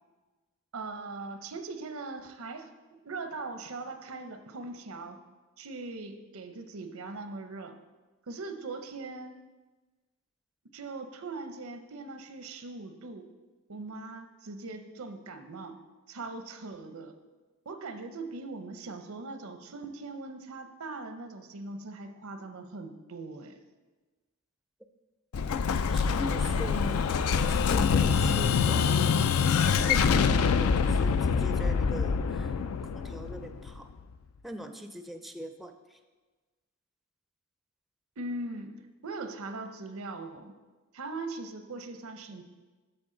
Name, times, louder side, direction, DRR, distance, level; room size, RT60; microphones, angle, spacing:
voice 1, 0.7-2.7 3.0-5.2 5.6-7.8 8.3-9.3 10.7-13.3 13.7-15.8 16.1-17.1 17.7-23.6 38.2-38.7 39.0-40.5 40.9-42.4, right 3 dB, 90° right, 7 dB, 0.7 m, -40 dB
Explosion, 25.3-34.0, left 6 dB, 85° left, 0.4 m, -25 dB
voice 2, 25.8-27.1 27.5-29.1 29.7-32.6 32.9-33.9 34.4-36.0, equal, ahead, 7 dB, 0.4 m, -41 dB
13.0 x 4.4 x 3.8 m, 1.3 s
head